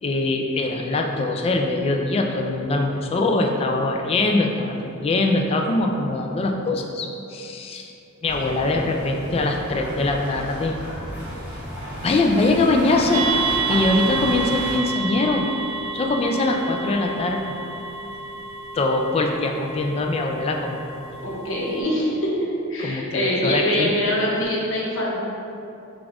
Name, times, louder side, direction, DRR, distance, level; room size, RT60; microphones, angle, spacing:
voice 1, 0.0-7.9 8.2-10.8 12.0-15.4 15.9-17.4 18.7-20.8 22.8-24.0, left 2 dB, 30° left, 2 dB, 0.3 m, -22 dB
sound 1, 8.2-14.8, equal, 10° right, 1.3 m, -33 dB
sound 2, 13.1-21.8, right 5 dB, 85° right, 0.5 m, -30 dB
voice 2, 21.2-22.4 22.7-25.3, left 1 dB, 70° left, -5 dB, 0.9 m, -24 dB
5.2 x 2.4 x 3.5 m, 2.7 s
head